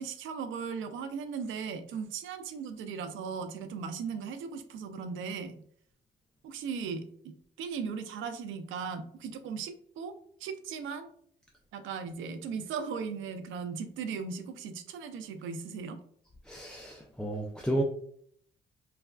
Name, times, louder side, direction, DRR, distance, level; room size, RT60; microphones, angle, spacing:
voice 1, 0.0-5.6 6.4-10.1 10.4-11.1 11.7-16.0, right 6 dB, 80° right, 8 dB, 0.4 m, -37 dB
voice 2, 16.5-17.8, right 1 dB, 5° left, 1 dB, 0.3 m, -32 dB
3.2 x 2.3 x 2.2 m, 0.64 s
cardioid pair, 90°, 20 cm